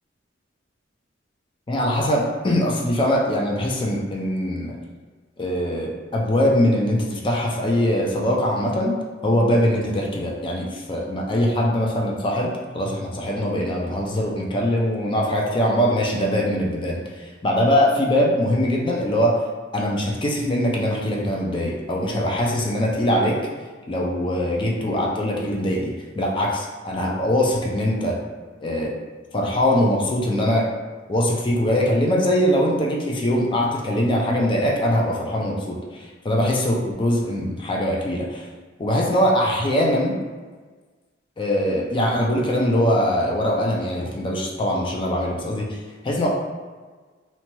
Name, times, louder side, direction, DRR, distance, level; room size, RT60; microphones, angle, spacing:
voice 1, 1.7-4.8 5.4-19.4 19.7-23.4 23.9-28.2 28.6-28.9 29.3-30.7 31.1-38.5 38.8-40.2 41.4-46.3, equal, 25° left, -2 dB, 0.4 m, -22 dB
2.8 x 2.2 x 2.9 m, 1.4 s
head